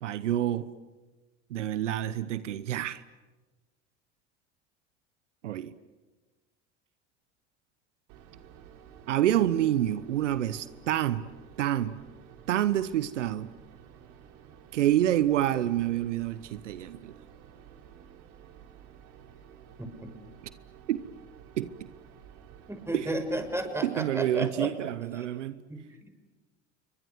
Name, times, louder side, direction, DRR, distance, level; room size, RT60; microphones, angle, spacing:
voice 1, 0.0-0.7 1.5-3.0 5.4-5.7 9.1-11.2 11.6-12.0 12.5-13.5 14.7-17.1 20.9-21.0 21.6-21.7 22.9-23.1 23.8-25.6, right 12 dB, 85° right, 1.0 m, -27 dB
sound 1, 8.1-23.6, right 8 dB, 65° right, 3.8 m, -52 dB
voice 2, 22.7-24.7 25.2-25.3 25.7-25.8, right 1 dB, 5° right, 6.1 m, -33 dB
29.5 x 23.5 x 7.9 m
hypercardioid pair, 80°, 35 cm